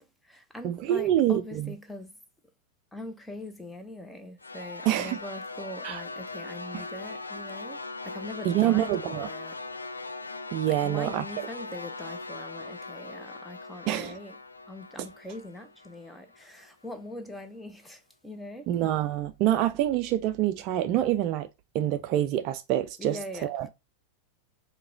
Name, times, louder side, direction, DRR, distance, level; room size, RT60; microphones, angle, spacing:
voice 1, 0.0-2.2 2.9-9.6 10.7-18.7 23.0-23.7, left 1 dB, 5° left, 0.6 m, -42 dB
voice 2, 0.6-1.7 4.8-5.2 5.8-6.0 6.7-6.8 8.4-9.3 10.5-11.5 13.9-14.2 18.7-21.5 21.7-23.7, right 12 dB, 40° right, 0.3 m, -26 dB
sound 1, 4.4-16.7, left 3 dB, 80° left, 0.4 m, -40 dB
4.7 x 2.2 x 3.5 m
figure-of-eight pair, 90°, 0 cm